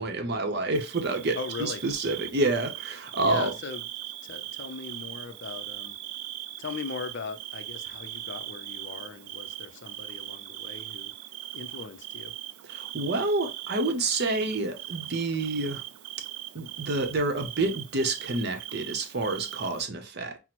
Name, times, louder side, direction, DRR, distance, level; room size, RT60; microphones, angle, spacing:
voice 1, 0.0-3.5 12.7-15.8 16.5-20.4, right 2 dB, 50° right, 0.6 m, -28 dB
Bird / Cricket, 0.7-19.8, right 14 dB, 85° right, 0.3 m, -40 dB
voice 2, 1.3-1.8 3.2-3.9 4.2-5.9 6.6-11.1 11.5-12.3, left 5 dB, 55° left, 0.5 m, -39 dB
5.8 x 2.0 x 2.9 m
head